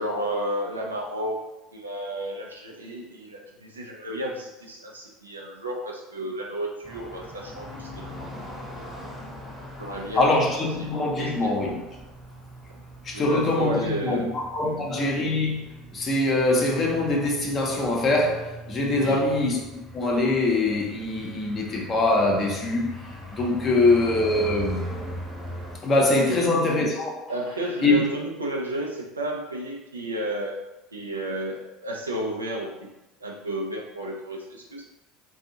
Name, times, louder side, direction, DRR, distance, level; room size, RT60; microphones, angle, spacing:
voice 1, 0.0-1.4 1.7-8.9 9.8-10.3 10.8-10.9 11.2-11.5 13.1-14.3 14.6-14.9 18.9-19.3 23.6-23.9 26.2-26.6 27.3-30.6 30.9-32.9 33.2-34.9, right 1 dB, 85° right, 0 dB, 0.4 m, -32 dB
sound 1, 6.8-25.8, equal, 10° right, 0.8 m, -40 dB
voice 2, 10.2-11.8 13.0-23.0 23.3-24.9 25.8-27.3 27.8-28.0, left 2 dB, 35° left, 0 dB, 0.7 m, -23 dB
2.5 x 2.3 x 2.7 m, 0.98 s
figure-of-eight pair, 70°, 0 cm